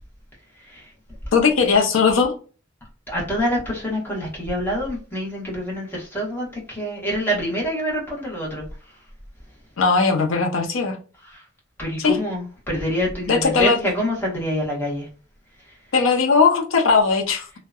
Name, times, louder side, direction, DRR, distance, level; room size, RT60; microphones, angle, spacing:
voice 1, 0.5-0.9 3.1-9.0 11.2-11.5 11.8-15.1 15.6-15.8, equal, 10° left, 0.9 m, -26 dB
voice 2, 1.3-2.3 9.8-11.0 12.0-12.2 13.3-13.8 15.9-17.5, left 5 dB, 85° left, 0.5 m, -18 dB
2.6 x 2.1 x 2.3 m
head